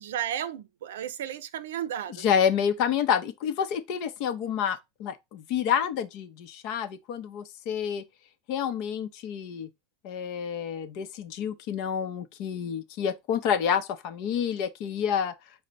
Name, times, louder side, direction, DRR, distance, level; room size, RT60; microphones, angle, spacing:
voice 1, 0.0-2.2, right 10 dB, 80° right, 0.5 m, -33 dB
voice 2, 2.2-8.0 8.5-9.7 10.0-15.3, left 8 dB, 60° left, 0.7 m, -28 dB
5.0 x 2.1 x 4.1 m
hypercardioid pair, 95°, 0 cm